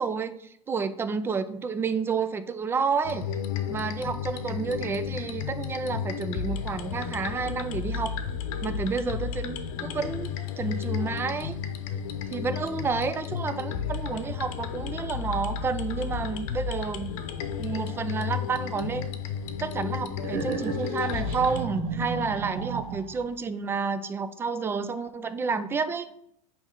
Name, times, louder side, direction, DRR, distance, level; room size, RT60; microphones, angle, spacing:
voice 1, 0.0-3.3 3.7-8.1 8.6-11.6 12.3-17.1 17.6-19.1 19.6-26.1, right 5 dB, 10° right, 12 dB, 0.3 m, -30 dB
sound 1, 3.0-21.6, left 7 dB, 60° left, 0.8 m, -33 dB
sound 2, 20.2-23.3, right 5 dB, 65° right, 0.9 m, -33 dB
8.4 x 3.2 x 3.7 m, 0.72 s
supercardioid pair, 130°, 19 cm